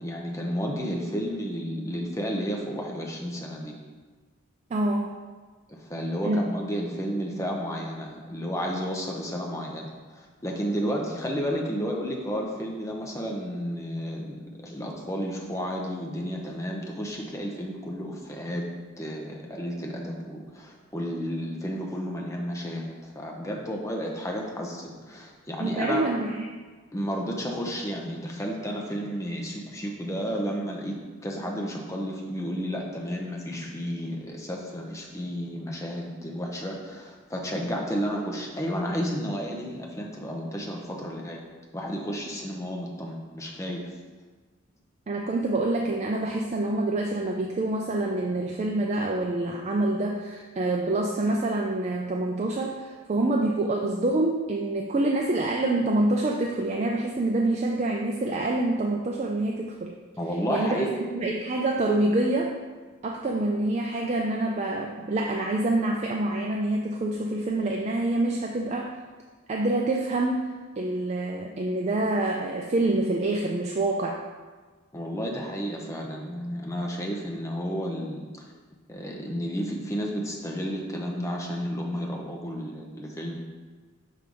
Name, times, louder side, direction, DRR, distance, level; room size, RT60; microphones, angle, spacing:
voice 1, 0.0-3.8 5.7-18.6 19.0-26.1 26.9-41.4 41.7-43.8 60.2-60.9 74.9-78.5 78.9-83.4, equal, 15° left, 0 dB, 0.7 m, -32 dB
voice 2, 4.7-5.1 6.2-6.5 25.6-26.4 45.1-59.9 60.5-62.6 63.0-68.9 69.5-70.5 70.8-74.2, right 2 dB, 30° right, 1 dB, 0.3 m, -26 dB
6.2 x 3.3 x 5.3 m, 1.4 s
head